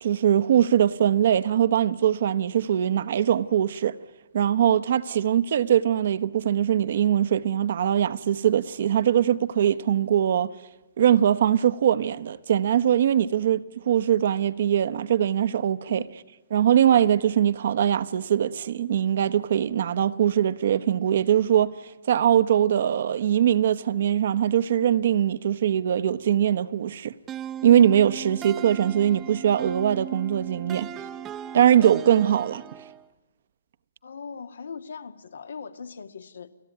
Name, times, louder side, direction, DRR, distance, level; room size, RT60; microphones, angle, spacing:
voice 1, 0.0-3.9 4.3-10.5 11.0-16.0 16.5-21.7 22.1-27.1 27.6-30.9 31.5-32.6, right 10 dB, 65° right, 1.1 m, -22 dB
sound 1, 27.3-33.1, right 9 dB, 20° right, 0.9 m, -38 dB
voice 2, 34.0-36.5, left 5 dB, 85° left, 1.9 m, -40 dB
29.5 x 18.0 x 9.5 m
hypercardioid pair, 145°, 0 cm